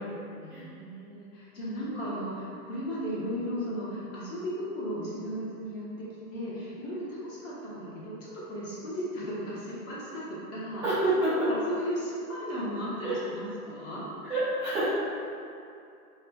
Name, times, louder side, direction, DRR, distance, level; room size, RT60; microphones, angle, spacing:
voice 1, 0.4-14.1, equal, 35° left, -7 dB, 1.1 m, -36 dB
voice 2, 10.8-11.5 13.0-13.2 14.2-14.9, right 2 dB, 5° right, -15 dB, 0.4 m, -28 dB
5.3 x 2.2 x 2.2 m, 2.5 s
hypercardioid pair, 120°, 45 cm